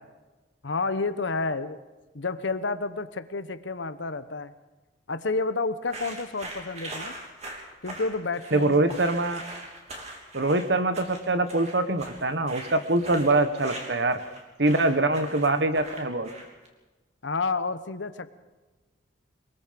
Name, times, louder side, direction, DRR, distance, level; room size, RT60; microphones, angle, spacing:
voice 1, 0.6-1.8 2.1-4.5 5.1-7.1 7.8-8.9 17.2-18.3, left 3 dB, 75° left, 12 dB, 1.0 m, -30 dB
sound 1, 5.9-16.7, right 1 dB, 35° right, 3.2 m, -41 dB
voice 2, 8.5-9.4 10.3-14.2 14.6-16.3, right 2 dB, 60° right, 10 dB, 1.4 m, -24 dB
24.0 x 21.5 x 5.3 m, 1.2 s
head